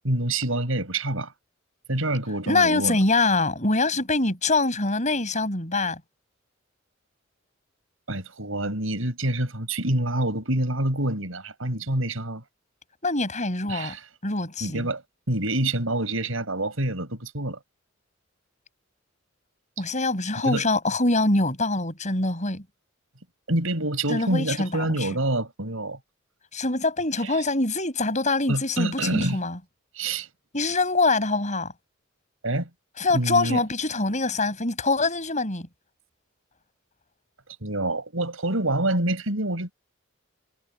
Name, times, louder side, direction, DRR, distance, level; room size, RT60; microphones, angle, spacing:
voice 1, 0.0-1.3 1.9-3.0 8.1-12.4 13.7-14.0 14.6-15.0 15.3-17.6 20.4-20.7 23.5-26.0 27.2-27.4 28.5-29.4 30.0-30.3 32.4-32.7 33.1-33.6 37.6-39.7, right 1 dB, 90° right, 5.7 m, -26 dB
voice 2, 2.5-6.0 13.0-14.0 14.2-14.9 19.8-22.6 24.1-25.1 26.5-29.6 30.5-31.7 33.0-35.7, left 3 dB, 35° left, 7.4 m, -24 dB
head